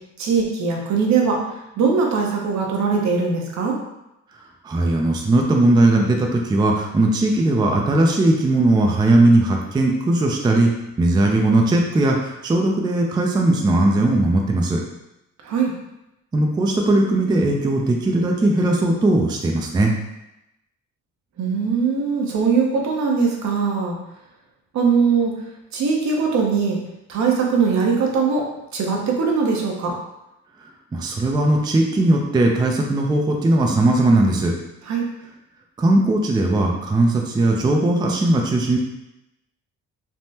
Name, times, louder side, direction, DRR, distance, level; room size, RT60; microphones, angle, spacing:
voice 1, 0.2-1.4 1.8-3.8 15.4-15.7 21.4-24.0 24.7-25.3 25.7-26.8 27.1-30.0 34.9-35.0, right 5 dB, 65° right, 0 dB, 0.7 m, -21 dB
voice 2, 4.6-10.7 11.0-14.8 16.3-19.9 30.9-34.5 35.8-38.8, right 2 dB, 15° right, 1 dB, 0.3 m, -18 dB
3.4 x 2.1 x 2.7 m, 0.90 s
cardioid pair, 90°, 30 cm